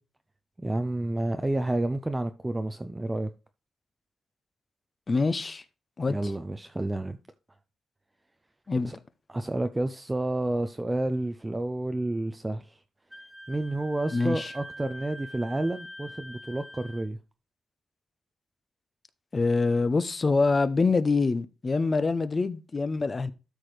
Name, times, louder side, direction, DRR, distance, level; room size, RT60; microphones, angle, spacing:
voice 1, 0.6-3.3 6.1-7.2 8.8-9.0 9.3-12.8 13.5-17.2, right 1 dB, 15° right, 0.5 m, -30 dB
voice 2, 5.1-5.6 6.0-6.3 8.7-8.9 14.1-14.5 19.3-23.3, left 3 dB, 30° left, 0.7 m, -25 dB
Wind instrument woodwind instrument, 13.1-17.1, equal, ahead, 1.3 m, -45 dB
13.0 x 4.7 x 3.2 m
cardioid pair, 105°, 0 cm